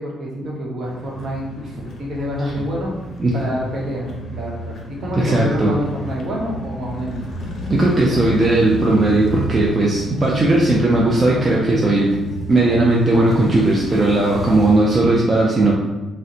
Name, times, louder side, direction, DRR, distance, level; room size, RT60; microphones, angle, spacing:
voice 1, 0.0-2.9 3.3-7.2, equal, 55° right, -3 dB, 0.9 m, -27 dB
sound 1, 0.8-15.1, equal, 50° left, 0.6 m, -32 dB
voice 2, 5.2-5.7 7.7-12.1 12.5-15.7, right 2 dB, 30° right, -4 dB, 0.5 m, -17 dB
sound 2, 7.4-10.0 10.3-13.2, left 1 dB, 10° left, 0.9 m, -37 dB
2.6 x 2.1 x 3.8 m, 1.1 s
cardioid pair, 90°, 0 cm